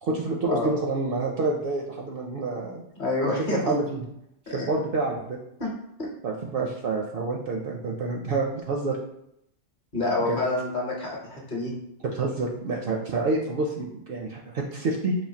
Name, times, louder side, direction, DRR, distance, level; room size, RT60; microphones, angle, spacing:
voice 1, 0.0-2.8 3.2-4.0 4.5-5.4 6.2-9.0 10.2-10.4 12.0-15.2, right 3 dB, 60° right, 0 dB, 0.6 m, -28 dB
voice 2, 3.0-3.7 4.5-4.7 5.6-5.7 6.0-6.1 9.9-11.7, left 2 dB, 45° left, -2 dB, 1.0 m, -28 dB
5.0 x 2.6 x 2.7 m, 0.77 s
omnidirectional pair, 1.2 m